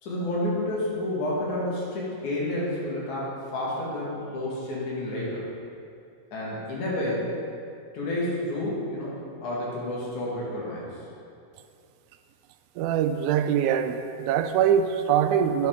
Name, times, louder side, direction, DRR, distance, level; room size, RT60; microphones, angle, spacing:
voice 1, 0.0-5.4 6.3-7.3 7.9-9.1 9.4-10.8, left 1 dB, 80° left, -6 dB, 3.5 m, -30 dB
voice 2, 12.8-15.7, right 9 dB, 85° right, 8 dB, 1.9 m, -23 dB
10.5 x 8.6 x 3.6 m, 2.5 s
omnidirectional pair, 3.4 m